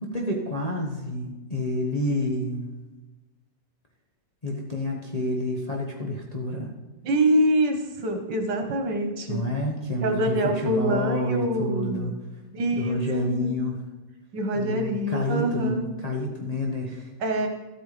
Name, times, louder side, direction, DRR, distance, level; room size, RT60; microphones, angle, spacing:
voice 1, 0.0-2.7 4.4-6.7 9.3-12.1 12.7-13.8 14.5-17.1, left 1 dB, 25° left, -2 dB, 1.3 m, -29 dB
voice 2, 7.0-9.5 10.0-12.1 12.5-13.5 14.3-15.9 17.2-17.5, right 1 dB, 75° right, 5 dB, 2.1 m, -25 dB
12.5 x 8.7 x 5.1 m, 1.1 s
omnidirectional pair, 1.9 m